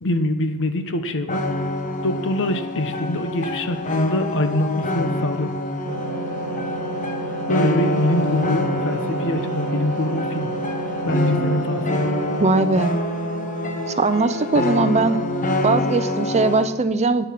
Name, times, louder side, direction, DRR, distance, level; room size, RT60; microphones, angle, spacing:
voice 1, 0.0-1.4 2.0-5.5 7.5-10.5 11.0-12.1, left 1 dB, 60° left, 9 dB, 1.0 m, -24 dB
sound 1, 1.3-16.7, left 1 dB, 35° left, 1.0 m, -26 dB
sound 2, 5.9-15.6, right 3 dB, 85° right, 0.9 m, -32 dB
voice 2, 12.4-13.0 13.9-15.2 15.6-17.3, right 3 dB, 30° right, 11 dB, 0.6 m, -20 dB
11.0 x 9.2 x 5.8 m, 1.2 s
head